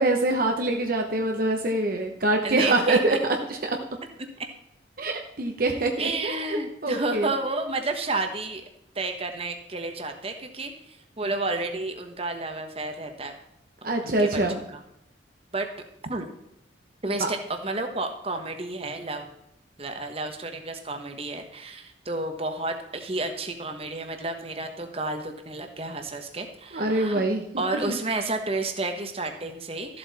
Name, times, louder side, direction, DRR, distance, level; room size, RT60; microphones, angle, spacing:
voice 1, 0.0-3.2 3.5-3.7 5.0-7.3 13.8-14.6 17.1-17.3 26.7-27.4 27.9-28.0, right 2 dB, 50° right, 2 dB, 1.0 m, -25 dB
voice 2, 2.4-3.2 4.4-4.5 6.0-8.6 8.9-13.4 13.8-14.4 14.7-14.8 15.5-15.7 16.1-16.3 17.0-19.3 19.8-27.2 27.6-30.0, right 2 dB, 30° right, 5 dB, 1.2 m, -31 dB
13.5 x 7.8 x 4.2 m, 0.82 s
head